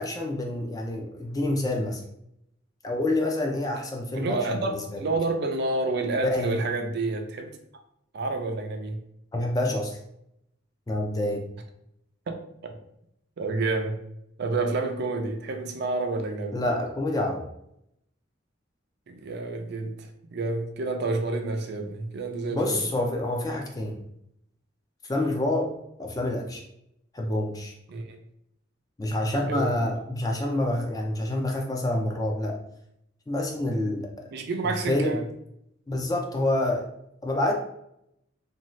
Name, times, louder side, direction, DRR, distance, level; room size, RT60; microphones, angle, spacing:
voice 1, 0.0-2.0 2.8-5.0 6.3-6.5 9.3-10.0 10.9-11.4 16.5-17.4 22.5-24.0 25.1-25.7 26.0-26.6 27.1-27.7 29.0-32.5 33.3-34.1 34.6-35.2 35.9-36.9 37.2-37.5, left 1 dB, 20° left, 1 dB, 0.4 m, -27 dB
voice 2, 4.1-7.5 8.1-9.0 12.3-12.4 12.6-12.7 13.4-14.0 14.4-16.6 19.1-22.8 25.1-25.3 27.9-28.2 29.3-29.8 34.3-35.2, right 3 dB, 55° right, 4 dB, 0.4 m, -29 dB
2.6 x 2.3 x 3.0 m, 0.77 s
head